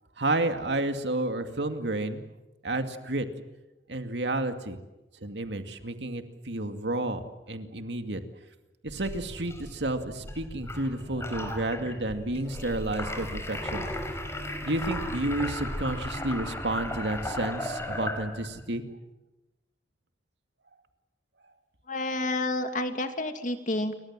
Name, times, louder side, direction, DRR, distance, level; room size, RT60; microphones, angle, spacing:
voice 1, 0.2-2.2 2.6-3.3 3.9-4.8 5.2-8.2 8.8-13.9 14.6-18.8, right 2 dB, 85° right, 7 dB, 2.3 m, -31 dB
sound 1, 8.9-18.6, left 1 dB, 15° left, 5.0 m, -36 dB
voice 2, 21.9-24.0, left 2 dB, 45° left, 7 dB, 2.4 m, -29 dB
29.0 x 23.5 x 7.6 m, 1.0 s
head